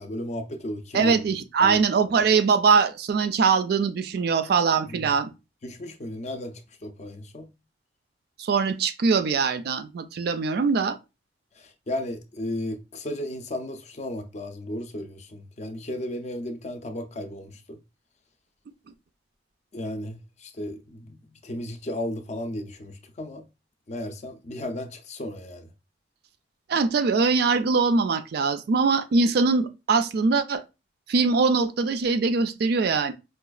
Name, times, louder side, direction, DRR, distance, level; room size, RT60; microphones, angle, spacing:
voice 1, 0.0-1.1 1.6-1.8 4.9-5.1 5.6-7.5 11.6-17.8 19.7-23.4 23.9-25.7, left 1 dB, 40° left, 0.5 m, -34 dB
voice 2, 0.9-5.3 8.4-11.0 26.7-30.6 31.1-33.1, right 5 dB, 55° right, 0.3 m, -22 dB
4.8 x 2.3 x 2.3 m
head